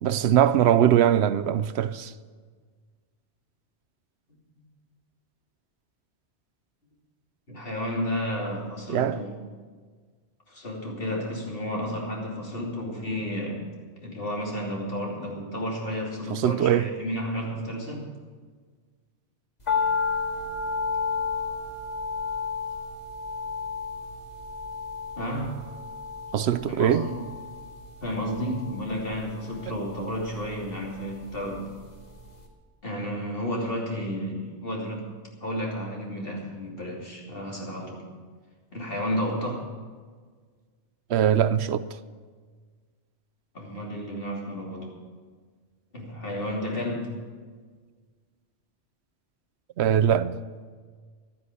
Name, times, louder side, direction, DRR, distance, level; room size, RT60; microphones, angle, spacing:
voice 1, 0.0-2.1 8.9-9.2 16.3-16.9 26.3-27.1 29.7-29.8 41.1-41.9 49.8-50.3, right 10 dB, 75° right, 0.8 m, -22 dB
voice 2, 7.5-9.3 10.5-13.7 14.0-18.1 25.2-25.6 26.7-27.2 28.0-31.7 32.8-35.0 35.4-38.0 38.7-39.7 43.5-44.9 45.9-47.1, equal, 55° left, 3.3 m, -32 dB
sound 1, 19.7-31.9 32.2-32.3, left 5 dB, 40° left, 2.1 m, -32 dB
13.0 x 9.7 x 8.4 m
omnidirectional pair, 1.1 m